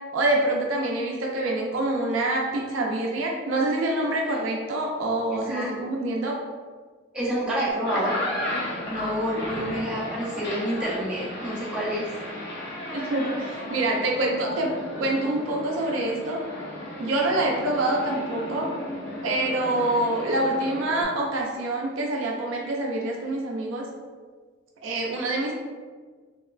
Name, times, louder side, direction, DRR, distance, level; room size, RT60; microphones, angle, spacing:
voice 1, 0.1-6.4 12.9-14.7 15.0-16.4 17.0-18.7 19.2-23.8 24.8-25.5, right 2 dB, 85° right, 0 dB, 0.4 m, -26 dB
voice 2, 7.1-8.1 8.9-12.0, equal, 5° right, -8 dB, 0.5 m, -28 dB
sound 1, 7.7-21.0, left 1 dB, 55° left, 0.5 m, -34 dB
2.9 x 2.0 x 2.3 m, 1.5 s
head